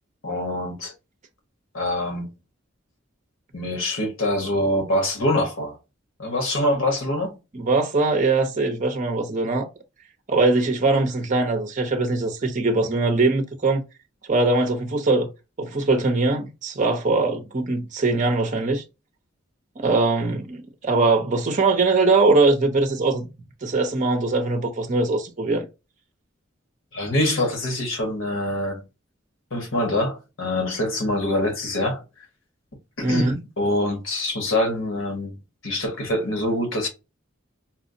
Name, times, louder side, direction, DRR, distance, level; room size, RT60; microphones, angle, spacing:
voice 1, 0.2-0.9 1.7-2.3 3.5-5.8 6.2-7.4 26.9-28.9 29.5-32.0 33.0-36.9, left 1 dB, 85° left, 1.2 m, -25 dB
voice 2, 7.5-9.7 10.3-13.8 14.3-15.3 15.6-18.8 19.8-23.3 23.6-25.6 33.0-33.4, right 3 dB, 40° right, 0.6 m, -21 dB
4.3 x 2.0 x 2.6 m
head